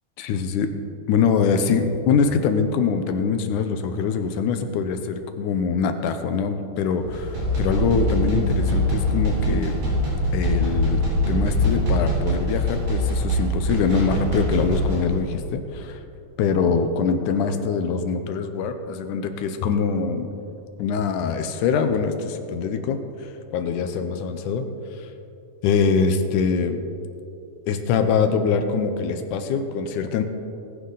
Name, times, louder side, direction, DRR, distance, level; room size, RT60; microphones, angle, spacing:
voice 1, 0.2-0.7 1.1-9.8 10.3-16.0 16.4-20.3 20.8-24.7 25.0-25.1 25.6-26.8 27.7-30.2, left 5 dB, 80° left, 8 dB, 2.2 m, -23 dB
sound 1, 7.0-15.2, equal, 80° right, 5.2 m, -23 dB
19.0 x 9.6 x 3.9 m, 2.7 s
omnidirectional pair, 3.7 m